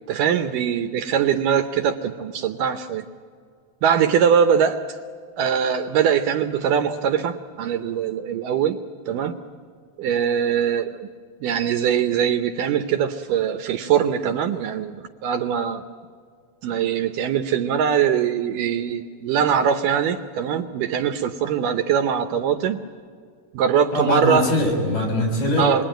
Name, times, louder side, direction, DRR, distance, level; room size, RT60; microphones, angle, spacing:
voice 1, 0.1-3.1 3.8-4.8 5.4-8.8 9.1-9.4 10.0-11.1 11.4-15.0 15.2-15.8 16.6-22.8 23.5-24.5 25.6-25.8, right 8 dB, 75° right, 8 dB, 2.2 m, -22 dB
voice 2, 23.9-25.8, left 1 dB, 60° left, 2 dB, 7.7 m, -22 dB
28.0 x 22.0 x 9.0 m, 2.1 s
omnidirectional pair, 4.3 m